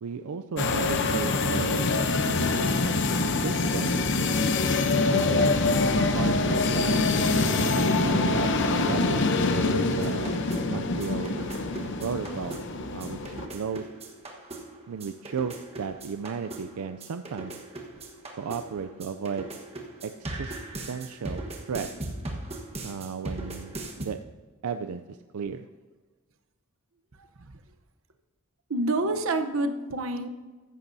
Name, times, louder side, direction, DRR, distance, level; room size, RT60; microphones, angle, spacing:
voice 1, 0.0-1.9 2.2-2.9 3.4-4.0 5.1-5.5 5.9-7.1 7.5-11.4 12.0-12.6 12.9-13.9 14.9-17.5 18.4-19.5 20.0-20.6 20.9-21.9 22.8-24.2 24.6-25.6, right 6 dB, 85° right, 9 dB, 0.4 m, -35 dB
sound 1, 0.6-13.5, left 3 dB, 55° left, 0.8 m, -25 dB
sound 2, 10.0-24.1, right 2 dB, 30° right, 1.3 m, -39 dB
voice 2, 28.7-30.3, right 2 dB, 65° right, 7 dB, 0.9 m, -27 dB
14.5 x 11.5 x 2.7 m, 1.4 s
head